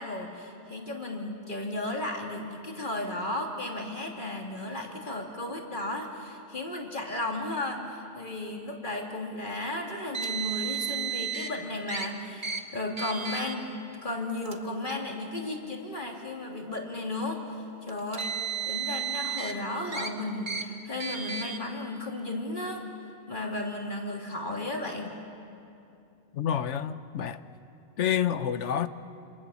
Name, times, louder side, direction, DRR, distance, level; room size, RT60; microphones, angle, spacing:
voice 1, 0.0-17.6 17.8-22.8 23.3-25.2, left 2 dB, 45° left, 3.1 m, -34 dB
Car, 10.1-11.5 11.9-12.1 12.4-12.6 13.0-13.5 14.4-14.6 15.5-15.6 17.9-19.5 19.9-20.1 20.5-20.6 21.0-21.6, right 7 dB, 45° right, 1.6 m, -33 dB
voice 2, 26.3-27.4 28.0-28.9, left 9 dB, 85° left, 1.2 m, -28 dB
27.0 x 27.0 x 7.2 m
omnidirectional pair, 1.2 m